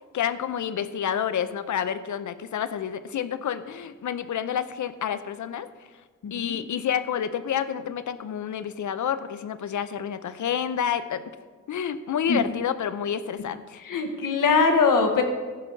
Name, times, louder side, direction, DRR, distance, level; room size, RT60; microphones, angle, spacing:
voice 1, 0.1-5.7 6.3-11.2 11.7-13.8, left 8 dB, 70° left, 13 dB, 0.6 m, -29 dB
voice 2, 6.2-6.6 12.3-12.4 13.8-15.2, left 4 dB, 90° left, 5 dB, 1.2 m, -22 dB
14.5 x 5.4 x 4.5 m, 1.4 s
cardioid pair, 80°, 31 cm